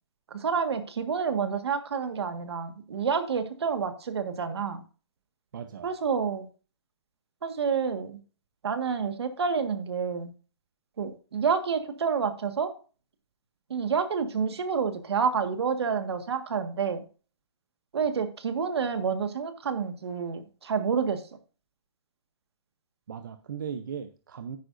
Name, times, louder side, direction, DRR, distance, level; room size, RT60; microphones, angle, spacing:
voice 1, 0.3-4.8 5.8-6.5 7.4-8.2 8.6-10.3 11.0-12.7 13.7-17.0 17.9-21.2, right 6 dB, 65° right, 8 dB, 1.6 m, -28 dB
voice 2, 5.5-5.9 23.1-24.6, right 7 dB, 45° right, 9 dB, 0.7 m, -37 dB
10.5 x 9.4 x 2.6 m, 0.37 s
hypercardioid pair, 180°, 14 cm